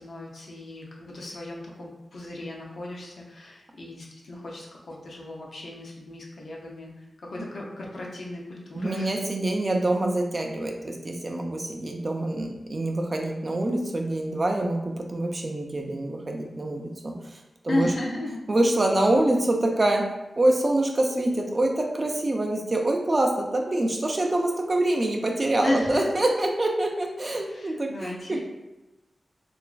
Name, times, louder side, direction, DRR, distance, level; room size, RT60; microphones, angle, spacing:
voice 1, 0.0-9.2 17.7-18.4 25.6-26.1 27.5-28.4, left 1 dB, 70° left, -2 dB, 0.6 m, -34 dB
voice 2, 8.7-17.9 18.5-28.4, right 1 dB, 40° right, 2 dB, 0.4 m, -25 dB
3.0 x 2.3 x 2.4 m, 0.97 s
wide cardioid pair, 70°, 0 cm